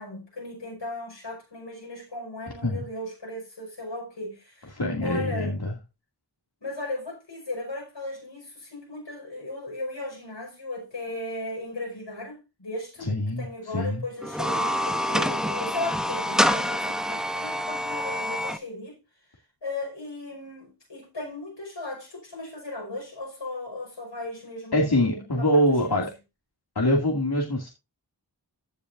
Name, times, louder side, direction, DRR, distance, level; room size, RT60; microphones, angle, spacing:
voice 1, 0.0-5.6 6.6-19.0 19.6-26.1, left 2 dB, 90° left, 5.4 m, -36 dB
voice 2, 4.8-5.7 13.1-13.4 13.7-14.0 24.7-26.1 26.8-27.7, left 1 dB, 60° left, 2.4 m, -24 dB
sound 1, 14.2-18.6, equal, ahead, 0.8 m, -26 dB
15.5 x 7.0 x 2.6 m
wide cardioid pair, 45°, 42 cm